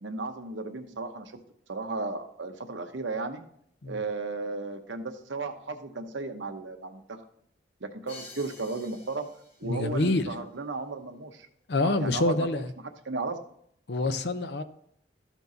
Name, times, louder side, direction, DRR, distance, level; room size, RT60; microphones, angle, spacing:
voice 1, 0.0-1.3 1.7-3.4 3.9-7.2 7.8-9.3 9.6-11.5 11.8-12.6 13.1-13.4, right 3 dB, 90° right, 6 dB, 1.0 m, -34 dB
Crash cymbal, 8.1-9.9, left 3 dB, 35° left, 1.4 m, -49 dB
voice 2, 9.6-10.3 11.7-12.7 13.9-14.6, left 2 dB, 65° left, 11 dB, 0.7 m, -27 dB
13.5 x 4.6 x 4.0 m, 0.68 s
head